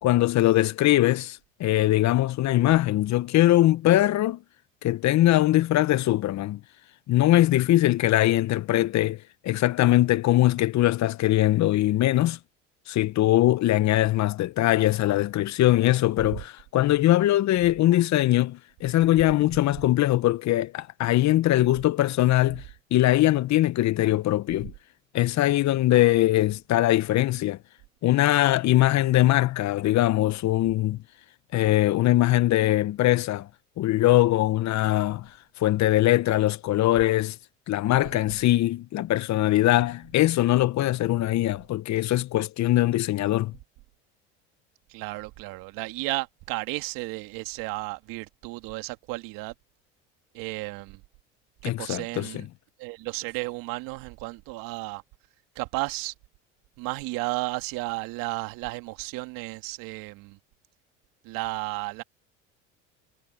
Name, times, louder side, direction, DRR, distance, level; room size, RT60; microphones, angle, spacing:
voice 1, 0.0-4.4 4.8-6.6 7.1-12.4 12.9-22.6 22.9-24.7 25.1-27.6 28.0-31.0 31.5-33.5 33.8-35.3 35.6-37.4 37.7-43.6 51.6-52.4, left 15 dB, 50° left, 1.1 m, -22 dB
voice 2, 44.9-49.5 50.3-51.0 51.6-52.5 52.8-55.0 55.6-56.1 56.8-60.4 61.2-62.0, right 23 dB, 65° right, 2.3 m, -33 dB
hypercardioid pair, 75°, 37 cm